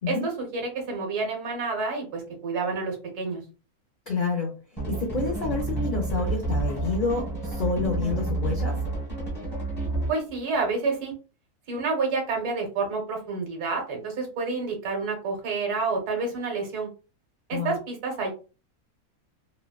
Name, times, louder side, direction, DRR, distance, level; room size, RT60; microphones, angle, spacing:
voice 1, 0.1-3.4 10.1-11.1 11.7-16.9 17.5-18.3, right 4 dB, 85° right, 1 dB, 1.5 m, -29 dB
voice 2, 4.1-4.5 4.9-8.8 17.5-17.8, left 4 dB, 75° left, 1 dB, 0.4 m, -28 dB
sound 1, 4.8-10.3, right 2 dB, 10° left, 0.8 m, -29 dB
3.1 x 2.1 x 2.3 m, 0.34 s
omnidirectional pair, 1.6 m